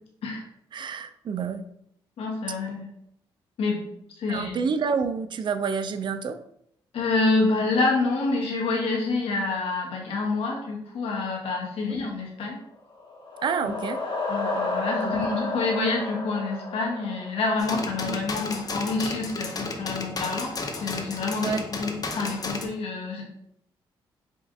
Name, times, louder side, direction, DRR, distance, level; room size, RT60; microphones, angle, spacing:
voice 1, 0.7-1.7 4.3-6.4 13.4-14.0 15.0-15.3 18.1-18.2 21.4-21.7, right 5 dB, 50° right, 10 dB, 0.4 m, -28 dB
voice 2, 2.2-2.9 3.6-3.9 4.2-4.6 6.9-12.6 13.6-13.7 14.3-23.2, left 3 dB, 75° left, -1 dB, 1.0 m, -27 dB
sound 1, 12.9-17.8, left 2 dB, 55° left, 1.1 m, -31 dB
sound 2, 17.6-22.6, left 3 dB, 40° left, 0.6 m, -33 dB
5.1 x 2.5 x 2.5 m, 0.73 s
supercardioid pair, 65°, 10 cm